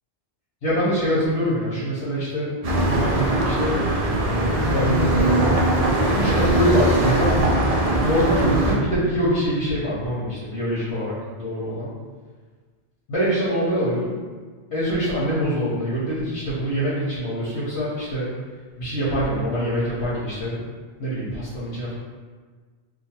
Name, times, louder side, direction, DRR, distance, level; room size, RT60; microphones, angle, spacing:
voice 1, 0.6-2.5 2.8-3.8 4.6-5.6 6.2-7.6 8.0-11.9 13.1-14.1 14.7-18.4 18.8-20.7 21.0-21.9, equal, 80° left, -10 dB, 1.2 m, -24 dB
sound 1, 2.6-8.8, right 1 dB, 50° right, 0.5 m, -21 dB
2.7 x 2.5 x 4.2 m, 1.5 s
omnidirectional pair, 1.1 m